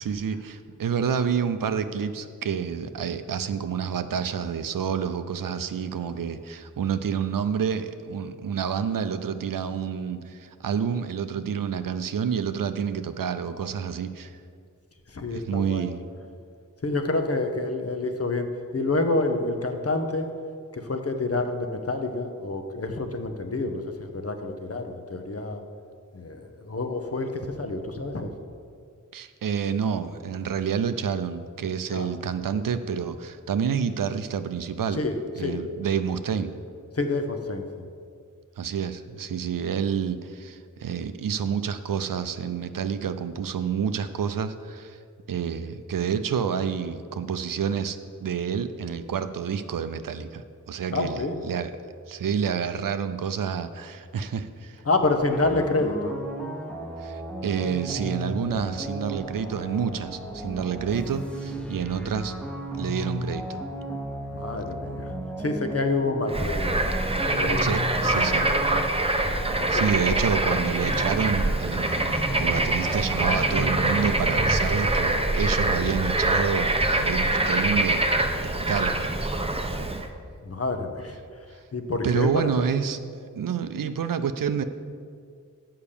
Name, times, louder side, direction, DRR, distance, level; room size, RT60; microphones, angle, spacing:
voice 1, 0.0-14.4 15.3-16.0 29.1-35.0 35.4-36.5 38.6-45.0 45.3-51.7 52.1-54.8 57.0-62.4 62.8-63.6 67.6-68.5 69.7-78.1 78.4-79.5 82.0-83.0 83.4-84.6, right 7 dB, 90° right, 11 dB, 0.5 m, -29 dB
voice 2, 15.1-15.9 16.8-18.5 18.7-20.3 20.7-25.6 26.1-28.3 31.9-32.1 34.9-35.6 36.9-37.9 50.9-51.4 54.8-56.2 64.3-65.1 65.4-66.7 67.1-67.8 69.6-70.0 80.4-81.2 81.7-82.3, left 2 dB, 45° left, 5 dB, 0.9 m, -28 dB
sound 1, 55.3-74.4, equal, 5° left, 1.1 m, -35 dB
Bird / Frog, 66.3-80.1, right 2 dB, 20° right, 0.7 m, -24 dB
7.1 x 5.7 x 6.7 m, 2.2 s
wide cardioid pair, 50°, 32 cm